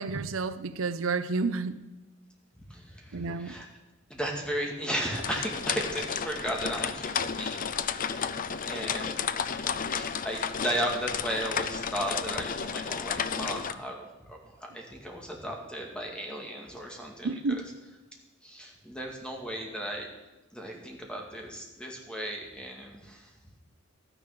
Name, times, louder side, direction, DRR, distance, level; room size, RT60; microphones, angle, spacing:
voice 1, 0.0-1.8 3.1-3.6 17.2-17.6, right 4 dB, 80° right, 0.6 m, -30 dB
voice 2, 2.7-3.7 4.1-17.6 18.4-20.1 20.5-23.3, equal, 5° left, 2.2 m, -36 dB
sound 1, 5.0-13.7, left 7 dB, 40° left, 0.5 m, -32 dB
13.0 x 10.0 x 6.7 m
head